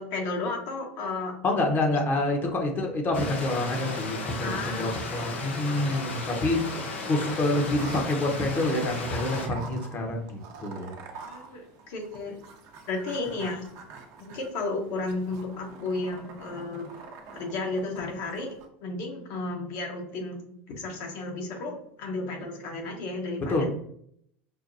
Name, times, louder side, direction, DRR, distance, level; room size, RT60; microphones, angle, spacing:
voice 1, 0.0-1.3 4.4-5.6 11.2-12.3 12.9-13.7 14.2-16.9 17.3-18.5 18.8-20.4 20.8-23.5, left 3 dB, 65° left, 1 dB, 1.2 m, -33 dB
voice 2, 1.4-6.6 7.1-10.9 23.5-23.7, left 2 dB, 35° left, 2 dB, 1.0 m, -27 dB
Stream, 3.1-9.5, left 2 dB, 90° left, 0.9 m, -35 dB
sound 1, 7.8-18.7, right 4 dB, 55° right, 0.8 m, -46 dB
5.7 x 2.2 x 2.6 m, 0.69 s
hypercardioid pair, 95°, 6 cm